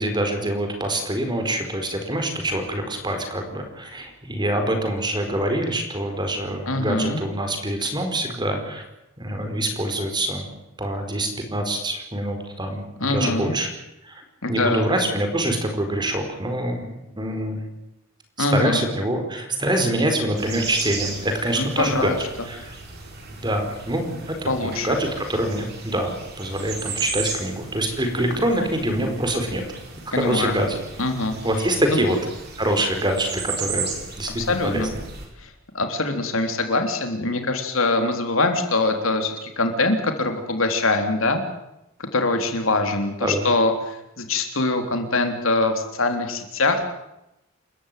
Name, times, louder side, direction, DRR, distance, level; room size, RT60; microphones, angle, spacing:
voice 1, 0.0-8.8 9.2-10.5 10.8-13.7 14.0-14.2 14.5-16.9 17.2-17.6 18.4-22.7 23.4-24.3 24.6-29.6 30.1-30.8 31.4-32.2 32.6-35.0 43.2-43.5, right 1 dB, 20° right, 5 dB, 4.7 m, -25 dB
voice 2, 6.7-7.2 13.0-13.5 14.4-14.8 18.4-18.9 21.6-22.5 24.5-24.9 30.1-30.6 31.0-31.3 31.9-32.2 34.4-34.9 35.4-41.4 42.1-46.8, left 2 dB, 65° left, 5 dB, 3.6 m, -23 dB
sound 1, 20.4-35.3, right 5 dB, 50° right, 6.5 m, -35 dB
29.0 x 14.5 x 9.3 m, 0.88 s
head